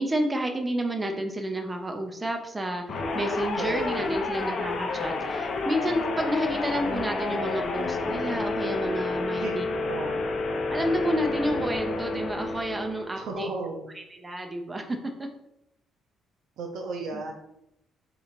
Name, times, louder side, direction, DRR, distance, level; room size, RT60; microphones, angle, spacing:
voice 1, 0.0-2.8 3.1-9.7 10.7-13.5 13.9-15.3 17.1-17.2, right 1 dB, 15° right, 3 dB, 0.5 m, -30 dB
sound 1, 2.9-13.2, left 3 dB, 45° left, 0.5 m, -30 dB
voice 2, 3.6-4.2 9.4-10.3 13.2-13.9 16.6-17.3, right 3 dB, 70° right, 2 dB, 0.6 m, -34 dB
3.7 x 2.9 x 4.3 m, 0.84 s
cardioid pair, 165°, 0 cm